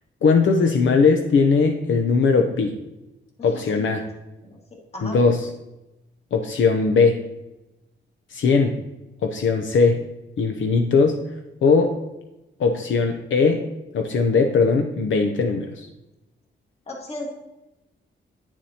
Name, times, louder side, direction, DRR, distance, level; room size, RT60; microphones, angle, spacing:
voice 1, 0.2-2.7 3.4-4.0 5.0-5.5 6.3-7.2 8.3-8.7 9.2-10.0 10.4-11.2 11.6-11.9 12.6-13.6 13.9-15.9, left 4 dB, 75° left, 4 dB, 0.7 m, -19 dB
voice 2, 3.4-4.0 4.4-4.6 4.9-5.2 16.9-17.3, left 1 dB, 30° left, -1 dB, 1.7 m, -35 dB
9.3 x 7.1 x 2.8 m, 0.96 s
wide cardioid pair, 150°, 20 cm